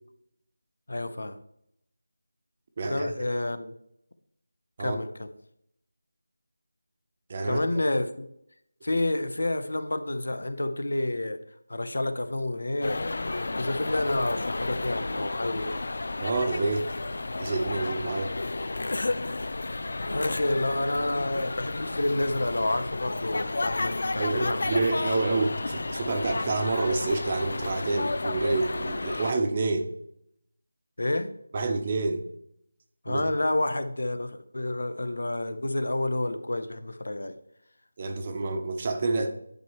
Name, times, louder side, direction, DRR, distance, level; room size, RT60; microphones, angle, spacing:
voice 1, 0.9-1.4 2.9-3.7 4.8-5.3 7.4-8.3 8.8-11.4 11.7-15.8 20.0-25.0 31.0-31.3 33.0-37.4, left 1 dB, 75° left, 0.7 m, -29 dB
voice 2, 2.8-3.2 4.8-5.0 7.3-7.8 16.2-16.9 17.4-18.3 24.2-29.9 31.5-32.2 33.1-33.2 38.0-39.3, right 3 dB, 30° right, 0.8 m, -28 dB
sound 1, 12.8-29.3, left 2 dB, 60° left, 0.3 m, -32 dB
10.5 x 4.5 x 3.1 m
figure-of-eight pair, 170°, 0 cm